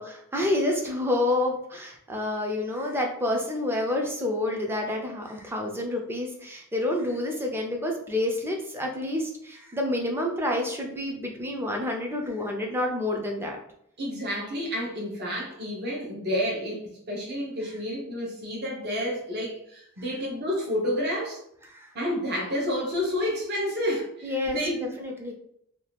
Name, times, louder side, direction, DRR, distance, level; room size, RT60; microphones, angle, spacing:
voice 1, 0.0-13.6 21.6-21.9 24.2-25.3, left 1 dB, 10° right, 1 dB, 0.4 m, -29 dB
voice 2, 14.0-16.8 17.1-21.4 21.9-24.9, equal, 50° right, -3 dB, 0.8 m, -30 dB
2.7 x 2.3 x 3.3 m, 0.72 s
head